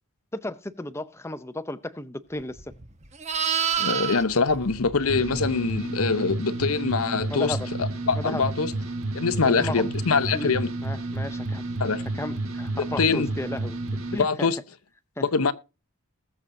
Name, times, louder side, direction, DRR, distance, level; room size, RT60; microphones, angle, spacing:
voice 1, 0.3-2.7 7.3-7.7 8.2-8.5 9.4-9.9 10.3-10.5 10.8-11.7 12.1-13.8 14.1-14.5 15.2-15.3, left 1 dB, 10° left, 0.6 m, -34 dB
Livestock farm animals working animals, 2.5-5.8 10.2-10.4, right 8 dB, 30° right, 1.0 m, -30 dB
voice 2, 3.8-8.7 9.1-10.7 11.8-12.0 13.0-13.3 14.2-14.6 15.2-15.5, left 4 dB, 80° left, 0.8 m, -24 dB
sound 1, 5.1-14.2, right 2 dB, 70° right, 1.4 m, -31 dB
20.0 x 7.2 x 2.7 m
head